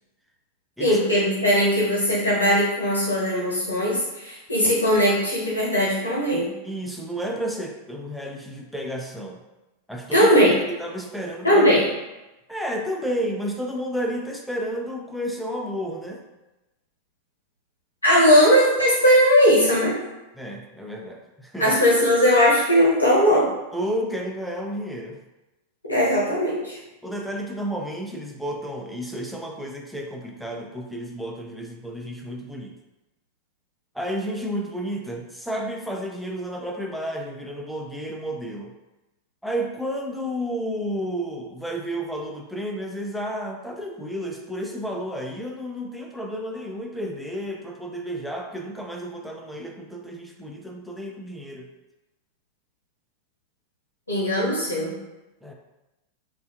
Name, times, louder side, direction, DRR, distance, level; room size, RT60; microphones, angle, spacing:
voice 1, 0.8-6.5 10.1-10.5 11.4-11.9 18.0-20.0 21.6-23.5 25.9-26.8 54.1-54.9, equal, 80° left, -6 dB, 0.9 m, -19 dB
voice 2, 6.6-9.4 9.9-10.3 10.7-11.6 12.5-16.2 20.4-21.7 23.7-25.2 27.0-32.7 33.9-38.7 39.4-51.7 55.4-55.5, equal, ahead, 0 dB, 0.3 m, -31 dB
2.5 x 2.3 x 2.4 m, 1.0 s
figure-of-eight pair, 90°, 0 cm